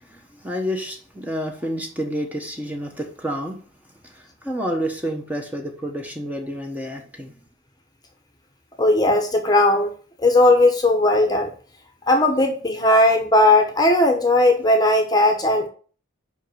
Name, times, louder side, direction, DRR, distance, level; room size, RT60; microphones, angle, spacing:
voice 1, 0.0-3.6 4.0-7.3, equal, 10° right, 3 dB, 1.0 m, -29 dB
voice 2, 8.8-9.9 10.2-11.5 12.1-15.7, left 1 dB, 20° left, 4 dB, 1.0 m, -17 dB
5.4 x 5.3 x 6.3 m, 0.41 s
head